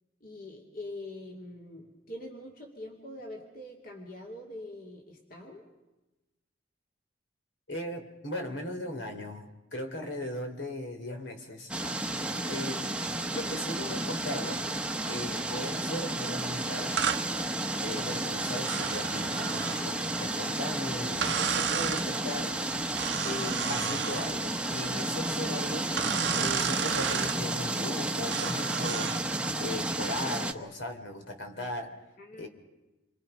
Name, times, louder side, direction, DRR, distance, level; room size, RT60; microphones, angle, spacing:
voice 1, 0.2-5.7 32.2-32.5, left 1 dB, 50° left, 1 dB, 2.6 m, -44 dB
voice 2, 7.7-11.7 12.5-12.9 13.3-14.6 15.1-17.0 17.8-22.6 23.2-25.9 26.4-29.1 29.6-31.9 32.4-32.5, left 1 dB, 75° left, 5 dB, 3.1 m, -38 dB
sound 1, 11.7-30.5, right 1 dB, 5° right, 0.9 m, -32 dB
sound 2, 17.0-17.2 18.6-19.9 21.2-22.1 23.0-24.3 26.0-27.4 28.3-29.2, right 8 dB, 65° right, 0.8 m, -32 dB
28.5 x 23.5 x 5.5 m, 1.1 s
head